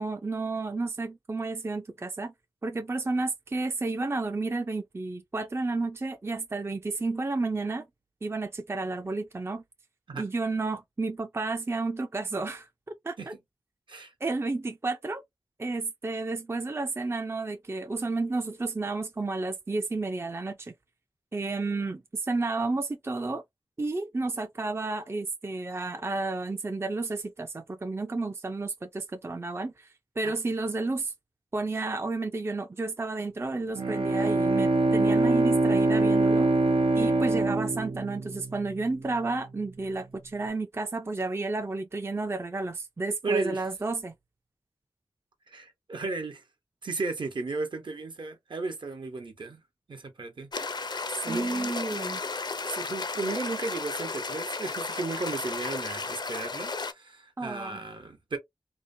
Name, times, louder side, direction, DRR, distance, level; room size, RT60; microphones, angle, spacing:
voice 1, 0.0-2.3 2.6-7.9 8.2-9.6 10.2-13.2 14.2-15.2 15.6-20.7 21.3-23.4 23.8-29.9 30.2-31.1 31.5-36.5 36.9-44.1 51.3-52.2 57.4-57.8, right 3 dB, 30° right, 0.4 m, -31 dB
Bowed string instrument, 33.8-38.9, right 2 dB, 90° right, 0.6 m, -24 dB
voice 2, 43.2-43.6 45.5-46.4 46.8-49.6 49.9-50.5 50.8-51.8 52.7-58.4, right 3 dB, 65° right, 0.9 m, -34 dB
sound 1, 50.5-56.9, left 4 dB, 55° left, 0.5 m, -34 dB
2.8 x 2.1 x 2.6 m
cardioid pair, 40°, 9 cm